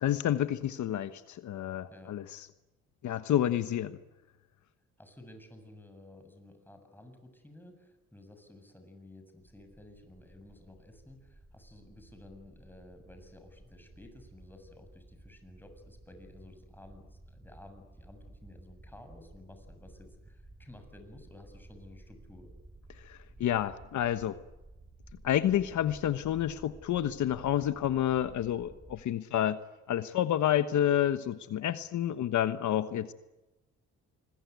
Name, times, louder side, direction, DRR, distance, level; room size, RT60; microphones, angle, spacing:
voice 1, 0.0-2.5 3.0-4.0 23.0-24.4 25.2-29.6 29.9-33.1, left 11 dB, 70° left, 11 dB, 1.3 m, -29 dB
voice 2, 1.9-2.4 5.0-22.5, left 1 dB, 5° left, 6 dB, 7.3 m, -53 dB
sound 1, 9.4-29.0, right 1 dB, 15° right, 5.2 m, -55 dB
27.5 x 21.5 x 9.5 m, 1.0 s
cardioid pair, 90°, 30 cm